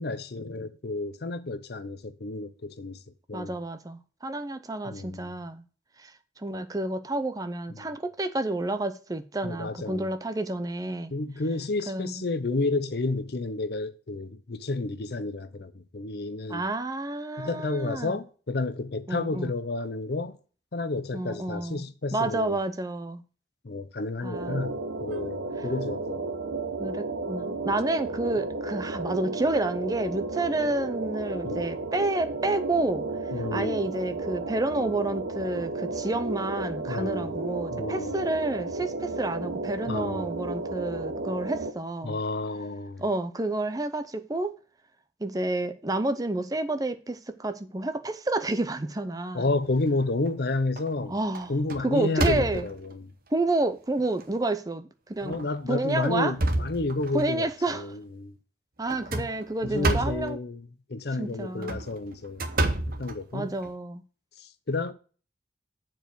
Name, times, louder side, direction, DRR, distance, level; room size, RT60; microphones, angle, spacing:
voice 1, 0.0-3.0 3.3-3.5 4.8-5.3 7.7-7.9 9.4-10.1 11.1-16.6 17.4-20.4 20.7-22.6 23.6-26.3 31.4-31.7 33.3-33.8 36.9-37.4 37.7-38.2 39.9-40.3 42.0-43.0 49.3-51.1 51.5-53.1 55.2-58.3 59.1-59.3 59.6-62.4 62.9-63.5 64.4-64.9, left 2 dB, 60° left, 0.7 m, -31 dB
voice 2, 3.3-5.6 6.0-6.1 6.4-11.1 11.9-12.2 16.5-18.2 19.1-19.5 21.1-21.8 22.1-23.2 24.2-24.6 26.8-33.1 33.5-42.2 43.0-44.5 45.2-49.5 51.1-51.5 51.8-52.7 53.3-55.4 55.7-56.3 57.1-57.9 58.8-60.4 61.2-61.8 63.3-64.0, right 2 dB, 20° right, 0.6 m, -29 dB
sound 1, 24.3-41.7, right 3 dB, 80° right, 0.9 m, -33 dB
sound 2, 49.7-50.3 50.8-51.0 51.3-52.9 53.6-53.7 54.2-54.3 55.2-55.4 55.9-57.3 58.9-60.3 61.5-63.7, right 2 dB, 50° right, 0.9 m, -30 dB
7.2 x 4.6 x 6.0 m
head